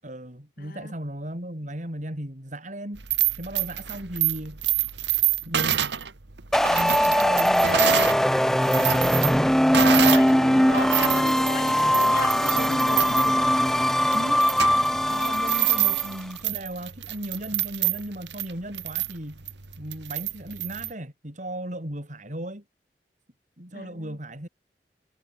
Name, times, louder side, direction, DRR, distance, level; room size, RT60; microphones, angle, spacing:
voice 1, 0.0-3.0 3.4-4.6 5.4-5.8 6.7-8.1 10.0-10.9 14.1-14.5 15.1-19.4 19.8-22.6 23.6-24.5, right 1 dB, 45° right, 6.4 m, -36 dB
voice 2, 0.6-0.9 9.7-13.6 23.7-24.2, left 3 dB, 55° left, 2.6 m, -36 dB
sound 1, 3.0-8.2 8.5-10.3 10.7-20.9, right 11 dB, 85° right, 1.5 m, -27 dB
sound 2, 6.5-16.2, equal, ahead, 0.5 m, -21 dB
head